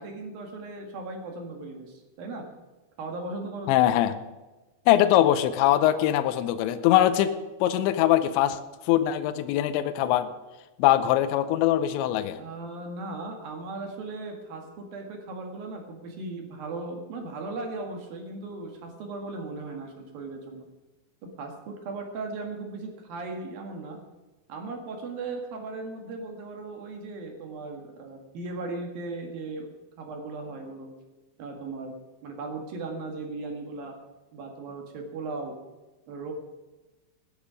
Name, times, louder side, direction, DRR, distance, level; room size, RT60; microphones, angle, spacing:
voice 1, 0.0-2.5 3.0-3.8 12.4-20.7 21.4-24.0 24.5-29.7 30.0-30.9 31.4-31.9 32.2-33.9 34.3-35.6 36.1-36.3, right 3 dB, 60° right, 3 dB, 2.8 m, -37 dB
voice 2, 3.7-4.2 4.9-7.3 7.6-10.3 10.8-12.4, left 12 dB, 85° left, 10 dB, 2.7 m, -22 dB
18.0 x 10.0 x 5.0 m, 1.1 s
omnidirectional pair, 6.0 m